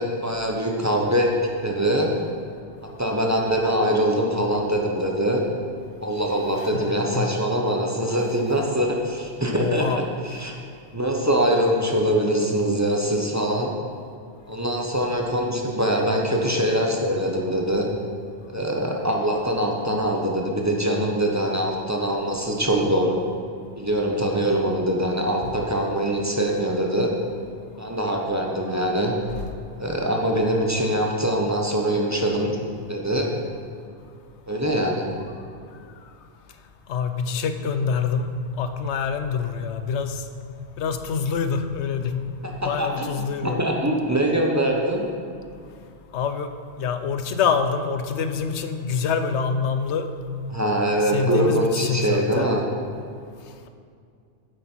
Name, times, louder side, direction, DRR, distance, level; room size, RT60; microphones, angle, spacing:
voice 1, 0.0-1.3 1.6-2.1 3.0-5.4 6.0-10.5 10.9-13.7 14.5-17.9 18.5-23.2 23.8-27.1 27.8-29.1 29.8-32.6 32.9-33.3 34.5-35.0 42.6-45.0 50.5-52.6, right 1 dB, 15° right, 0 dB, 0.9 m, -23 dB
voice 2, 6.6-7.3 9.5-10.0 25.4-25.5 36.9-38.3 38.6-40.2 40.8-42.3 42.6-43.6 46.1-46.5 46.8-50.1 51.0-52.5, left 6 dB, 85° left, 9 dB, 1.0 m, -26 dB
9.3 x 8.2 x 4.5 m, 2.3 s
omnidirectional pair, 1.1 m